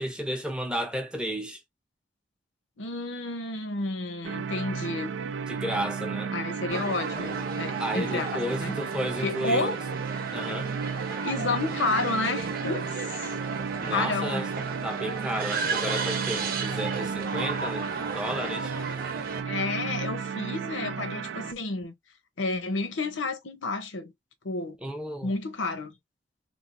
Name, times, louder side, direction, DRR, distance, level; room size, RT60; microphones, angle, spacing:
voice 1, 0.0-1.6 5.5-6.3 7.8-9.8 10.3-10.7 13.8-14.5 14.8-18.7 24.8-25.3, equal, 5° right, 0.6 m, -32 dB
voice 2, 2.8-5.2 6.3-8.8 9.2-9.8 11.2-13.4 13.8-14.4 19.5-21.9 22.4-24.1 24.4-24.8 25.2-25.9, left 3 dB, 80° left, 0.7 m, -31 dB
sound 1, 4.2-21.5, right 6 dB, 85° right, 0.4 m, -33 dB
sound 2, 6.7-19.4, right 4 dB, 50° right, 0.8 m, -35 dB
3.1 x 2.3 x 2.5 m
head